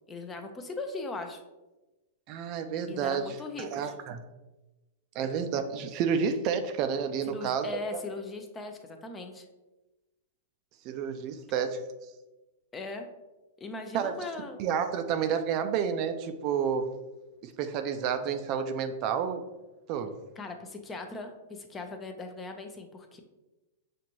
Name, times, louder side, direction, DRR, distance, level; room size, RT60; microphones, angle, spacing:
voice 1, 0.1-1.4 2.9-3.9 7.3-9.5 12.7-13.1 13.6-14.6 20.4-23.2, left 3 dB, 20° left, 5 dB, 0.5 m, -39 dB
voice 2, 2.3-4.2 5.1-7.7 7.9-8.0 10.8-11.8 13.9-14.2 14.6-16.9 17.4-19.4 19.9-20.2, right 7 dB, 45° right, 8 dB, 0.4 m, -30 dB
5.8 x 2.5 x 2.9 m, 1.1 s
hypercardioid pair, 120°, 0 cm